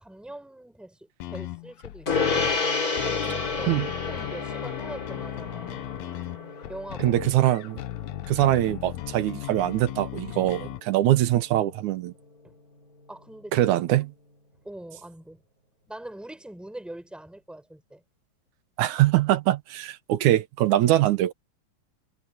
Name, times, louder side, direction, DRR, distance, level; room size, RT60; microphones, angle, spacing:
voice 1, 0.0-2.6 2.9-5.8 6.7-7.2 12.4-12.6 13.1-13.6 14.6-15.4 15.9-18.0, right 1 dB, ahead, 6.8 m, -42 dB
sound 1, 1.2-10.8, left 15 dB, 75° left, 1.7 m, -37 dB
Gong, 2.1-11.8, left 4 dB, 30° left, 2.9 m, -32 dB
voice 2, 7.0-7.8 8.3-12.1 13.5-14.1 18.8-21.3, right 14 dB, 75° right, 2.4 m, -23 dB
omnidirectional pair, 3.6 m